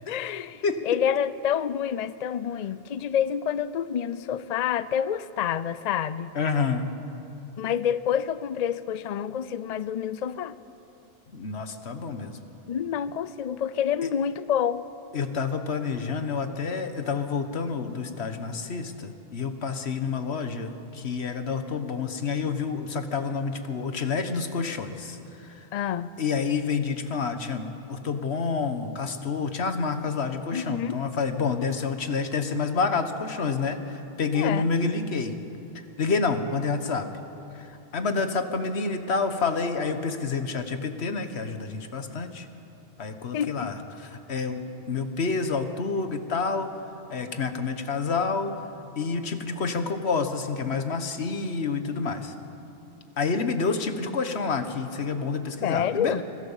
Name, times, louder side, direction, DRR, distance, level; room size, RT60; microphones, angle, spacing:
voice 1, 0.1-6.3 7.6-10.6 12.7-14.9 25.7-26.1 30.5-31.0 34.3-34.7 43.3-43.7 55.6-56.2, left 9 dB, 50° left, 15 dB, 0.5 m, -28 dB
voice 2, 6.3-6.9 11.3-12.4 15.1-25.7 26.2-35.3 36.0-37.1 37.5-42.5 43.0-44.6 44.9-46.8 47.1-48.7 49.0-52.3 53.2-56.2, left 4 dB, 90° left, 8 dB, 1.5 m, -28 dB
24.0 x 16.0 x 7.3 m, 2.9 s
omnidirectional pair, 1.1 m